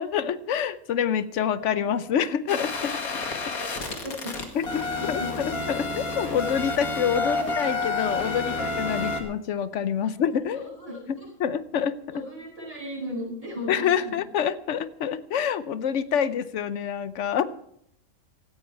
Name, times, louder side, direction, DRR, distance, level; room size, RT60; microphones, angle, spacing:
voice 1, 0.0-3.0 3.5-3.6 4.5-10.7 11.1-12.3 13.7-17.4, left 8 dB, 60° left, 15 dB, 1.0 m, -27 dB
sound 1, 2.5-9.2, left 3 dB, 90° left, 2.5 m, -29 dB
voice 2, 3.5-4.3 5.0-5.3 7.2-7.4 8.5-8.6 9.1-9.2 10.6-11.3 12.1-14.2, left 1 dB, 25° right, -3 dB, 7.2 m, -37 dB
17.0 x 13.5 x 4.6 m, 0.74 s
omnidirectional pair, 1.5 m